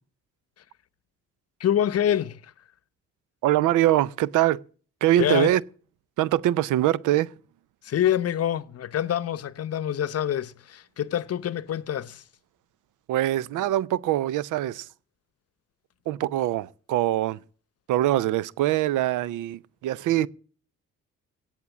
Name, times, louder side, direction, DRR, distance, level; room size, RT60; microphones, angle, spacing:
voice 1, 1.6-2.5 5.2-5.5 7.8-12.2, left 10 dB, 55° left, 0.8 m, -26 dB
voice 2, 3.4-4.6 5.0-5.6 6.2-7.3 13.1-14.9 16.1-17.4 17.9-20.3, right 14 dB, 85° right, 0.6 m, -23 dB
17.0 x 7.4 x 7.2 m
cardioid pair, 90°, 30 cm